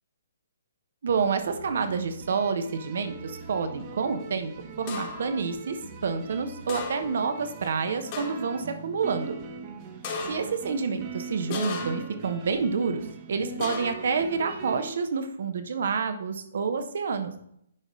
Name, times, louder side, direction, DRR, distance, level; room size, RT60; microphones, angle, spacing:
voice 1, 1.0-4.5 4.8-5.8 6.0-9.3 10.3-13.0 13.3-17.3, right 5 dB, 60° right, 8 dB, 1.0 m, -28 dB
sound 1, 1.2-14.9, right 5 dB, 35° right, 1.1 m, -42 dB
sound 2, 4.9-5.3 6.7-7.3 7.6-7.7 8.1-8.6 10.0-10.6 11.5-12.2 13.6-14.1, left 4 dB, 40° left, 1.8 m, -35 dB
9.8 x 5.3 x 3.2 m, 0.72 s
figure-of-eight pair, 135°, 0 cm